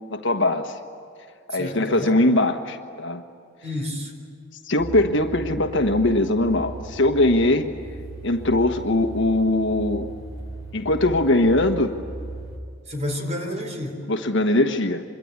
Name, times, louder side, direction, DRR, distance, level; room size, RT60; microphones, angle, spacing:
voice 1, 0.1-0.8 1.5-3.2 4.6-7.7 8.2-10.1 10.7-12.0 14.1-15.0, left 1 dB, 65° left, 6 dB, 1.3 m, -21 dB
voice 2, 1.5-2.2 3.6-4.1 12.9-14.0, left 1 dB, 35° right, 4 dB, 3.9 m, -30 dB
sound 1, 4.8-12.6, right 2 dB, 75° right, 3.9 m, -37 dB
25.5 x 22.5 x 9.6 m, 2.2 s
head